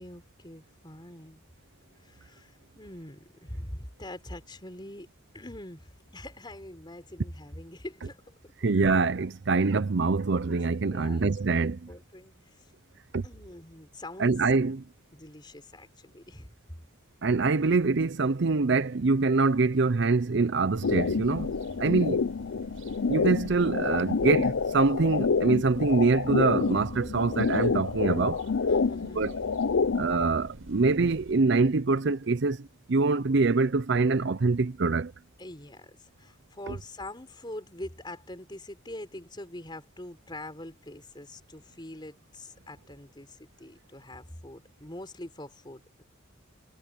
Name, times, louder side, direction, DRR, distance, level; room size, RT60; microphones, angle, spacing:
voice 1, 0.0-1.4 2.0-5.1 5.3-8.5 10.9-11.3 11.6-12.7 13.2-14.4 15.1-16.6 28.7-29.4 35.4-46.0, left 1 dB, 20° left, 4.2 m, -44 dB
voice 2, 8.6-11.8 13.1-13.2 14.2-14.8 17.2-21.5 21.8-22.3 23.1-28.4 29.2-29.3 30.0-35.1 36.7-36.8, right 3 dB, 60° right, 0.6 m, -25 dB
sound 1, 20.7-31.4, equal, 85° right, 8.0 m, -46 dB
sound 2, 20.8-30.3, left 5 dB, 80° left, 0.6 m, -28 dB
head